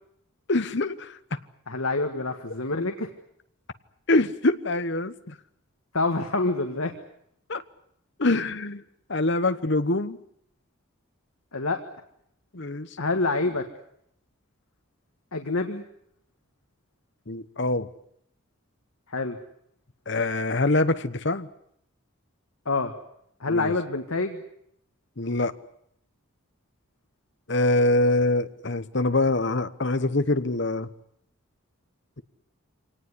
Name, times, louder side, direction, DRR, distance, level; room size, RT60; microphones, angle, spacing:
voice 1, 0.5-1.2 4.1-5.3 7.5-7.6 8.2-8.8 9.1-10.2 12.5-12.9 17.3-17.9 20.1-21.5 23.5-23.7 25.2-25.5 27.5-30.9, left 2 dB, 55° left, 12 dB, 1.1 m, -24 dB
voice 2, 1.7-3.1 5.9-6.9 11.5-11.8 13.0-13.6 15.3-15.8 19.1-19.4 22.7-22.9 23.4-24.4, left 3 dB, 80° left, 5 dB, 1.8 m, -26 dB
25.0 x 18.5 x 9.8 m, 0.72 s
head